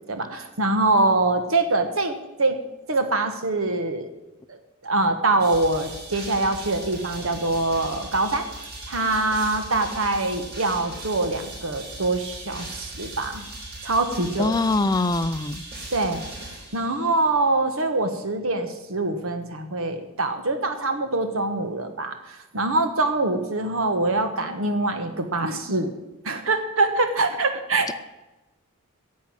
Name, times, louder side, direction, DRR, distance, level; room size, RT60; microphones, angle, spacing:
voice 1, 0.1-2.1 2.4-2.6 2.9-4.1 4.5-4.6 4.8-8.5 8.9-13.4 13.8-14.5 15.9-16.2 16.7-25.9 26.2-27.9, right 2 dB, 65° right, 7 dB, 1.3 m, -24 dB
sound 1, 5.4-17.3, right 2 dB, 45° right, 4.8 m, -39 dB
voice 2, 14.4-15.6, left 3 dB, 15° left, 15 dB, 0.4 m, -23 dB
11.0 x 7.6 x 9.0 m, 1.0 s
head